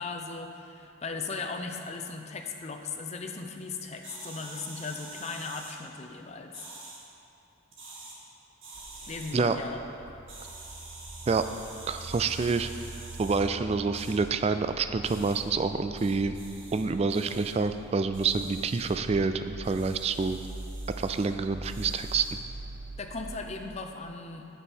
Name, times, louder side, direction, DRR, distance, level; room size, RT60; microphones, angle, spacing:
voice 1, 0.0-6.6 9.1-9.8 23.0-24.5, left 4 dB, 35° left, 3 dB, 0.7 m, -37 dB
sound 1, 4.0-5.7 6.5-7.0 7.7-8.2 8.6-9.3 10.3-13.4 13.9-14.1 15.0-15.4 16.0-16.8 17.1-17.5 18.1-18.9 19.6-21.3 21.6-22.4, right 2 dB, 70° right, 2.0 m, -47 dB
sound 2, 8.7-23.4, right 2 dB, 50° right, 0.8 m, -44 dB
voice 2, 11.9-12.7 13.2-16.3 16.7-20.4 21.0-22.3, right 4 dB, 30° right, 9 dB, 0.3 m, -27 dB
8.4 x 6.1 x 7.3 m, 2.7 s
head